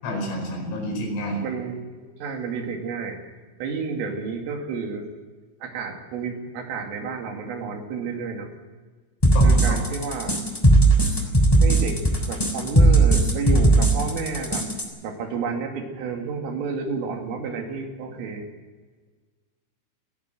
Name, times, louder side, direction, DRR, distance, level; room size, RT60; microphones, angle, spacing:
voice 1, 0.0-1.4 9.4-9.8, equal, 80° left, 2 dB, 7.4 m, -29 dB
voice 2, 1.4-3.2 3.6-5.1 5.6-8.5 9.4-10.4 11.6-12.0 12.3-14.6 15.0-18.5, right 5 dB, 80° right, 3 dB, 5.1 m, -30 dB
sound 1, 9.2-14.8, right 2 dB, 5° left, 2.4 m, -17 dB
29.0 x 11.5 x 7.8 m, 1.4 s
omnidirectional pair, 5.7 m